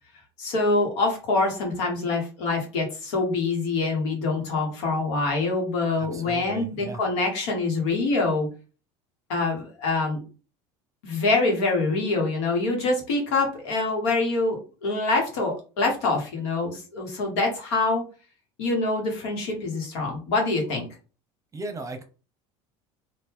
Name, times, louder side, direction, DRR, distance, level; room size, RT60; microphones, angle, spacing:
voice 1, 0.4-8.5 9.3-10.2 11.0-18.0 18.6-20.9, left 3 dB, 85° left, 1 dB, 1.4 m, -25 dB
voice 2, 6.0-7.0 21.5-22.0, right 2 dB, 20° right, 7 dB, 0.8 m, -36 dB
2.9 x 2.6 x 3.6 m, 0.35 s
supercardioid pair, 95°, 14 cm